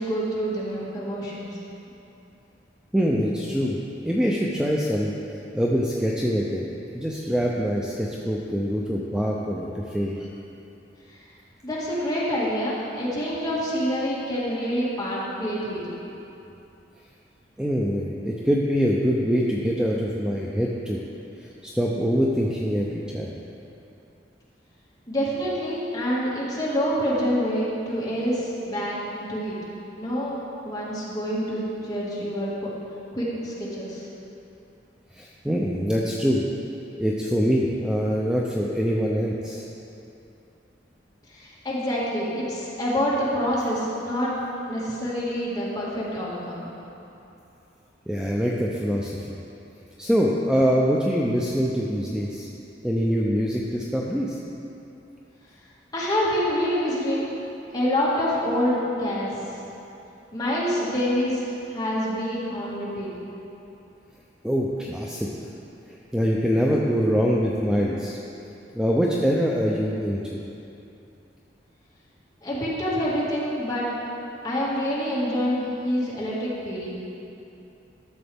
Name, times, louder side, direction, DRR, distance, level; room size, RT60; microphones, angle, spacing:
voice 1, 0.0-1.5 11.6-16.0 25.1-29.6 30.0-30.4 30.6-32.7 33.1-34.0 41.3-44.3 44.7-46.7 55.9-57.3 57.7-59.3 60.3-61.4 61.7-63.1 72.4-73.9 74.4-76.9, equal, 20° left, -8 dB, 2.0 m, -26 dB
voice 2, 2.9-3.8 4.0-5.1 5.5-6.7 6.9-10.3 17.6-21.0 21.4-23.3 35.1-36.4 37.0-39.7 48.1-49.2 50.0-52.5 52.8-54.4 64.4-65.3 66.1-68.2 68.7-70.4, equal, 5° right, -3 dB, 0.5 m, -24 dB
12.5 x 6.9 x 3.5 m, 2.9 s
head